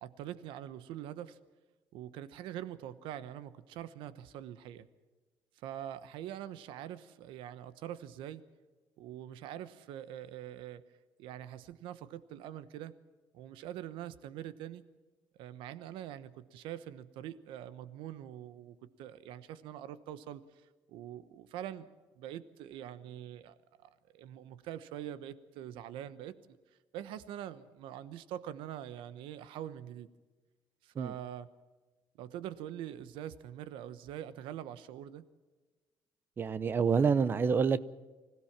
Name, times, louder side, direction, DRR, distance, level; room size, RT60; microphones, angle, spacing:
voice 1, 0.0-1.4 1.9-4.9 5.6-8.4 9.0-10.8 11.2-12.9 13.3-14.8 15.4-20.4 20.9-21.9 22.2-26.4 26.9-30.1 30.8-31.5 32.2-35.2, right 11 dB, 90° right, 14 dB, 1.1 m, -44 dB
voice 2, 36.4-37.8, right 6 dB, 25° right, 17 dB, 0.7 m, -27 dB
25.0 x 16.5 x 7.4 m, 1.2 s
cardioid pair, 165°, 8 cm